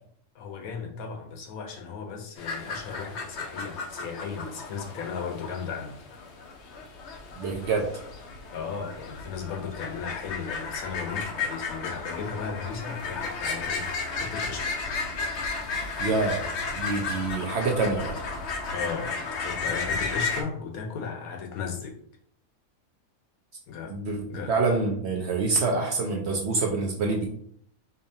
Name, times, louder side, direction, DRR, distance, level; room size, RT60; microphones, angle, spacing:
voice 1, 0.3-6.0 8.5-14.8 18.7-22.0 23.7-24.0 24.3-24.5, left 6 dB, 80° left, 3 dB, 1.2 m, -36 dB
sound 1, 2.4-20.4, left 4 dB, 60° left, 0.8 m, -34 dB
voice 2, 7.4-7.9 16.0-16.4 16.8-18.1 23.9-27.3, right 3 dB, 60° right, 1 dB, 0.7 m, -26 dB
5.0 x 2.4 x 2.7 m, 0.64 s
omnidirectional pair, 1.5 m